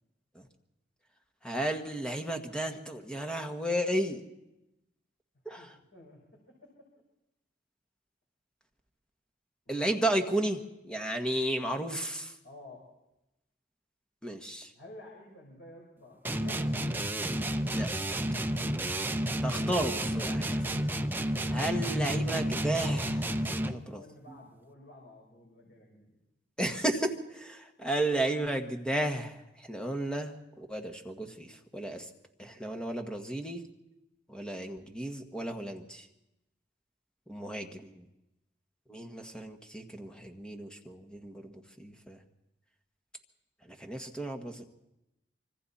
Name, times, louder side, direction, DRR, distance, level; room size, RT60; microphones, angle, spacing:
voice 1, 1.4-4.2 5.4-5.7 9.7-10.6 10.9-12.3 14.2-14.7 17.7-18.2 19.4-20.6 21.5-24.0 24.3-24.4 26.6-29.4 29.7-32.1 32.4-33.6 34.3-36.0 37.3-38.0 38.9-41.5 41.8-42.2 43.8-44.7, right 1 dB, 5° left, 4 dB, 1.5 m, -33 dB
voice 2, 5.6-6.2 6.6-6.9 9.6-9.9 12.4-12.8 14.7-17.0 23.6-26.2, left 1 dB, 70° left, -2 dB, 5.3 m, -52 dB
sound 1, 16.3-23.9, right 1 dB, 10° right, 0.7 m, -31 dB
26.0 x 24.0 x 4.3 m, 0.93 s
head